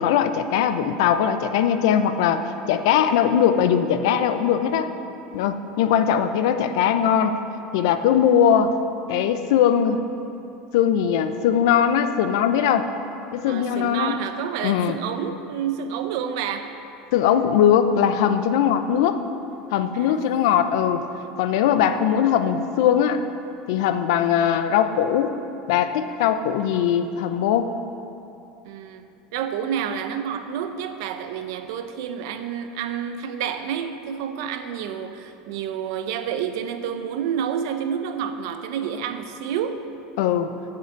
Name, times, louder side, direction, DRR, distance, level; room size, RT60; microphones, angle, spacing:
voice 1, 0.0-4.9 5.3-7.3 7.7-8.7 9.1-10.0 10.7-12.9 13.3-14.2 14.6-15.0 17.1-19.2 19.7-21.0 21.4-23.2 23.7-25.3 25.7-27.7 40.2-40.5, left 9 dB, 80° left, 10 dB, 0.6 m, -20 dB
voice 2, 13.5-16.7 19.9-20.3 28.6-29.1 29.3-39.8, right 8 dB, 75° right, 8 dB, 0.7 m, -29 dB
7.7 x 5.9 x 7.7 m, 2.8 s
supercardioid pair, 125°, 2 cm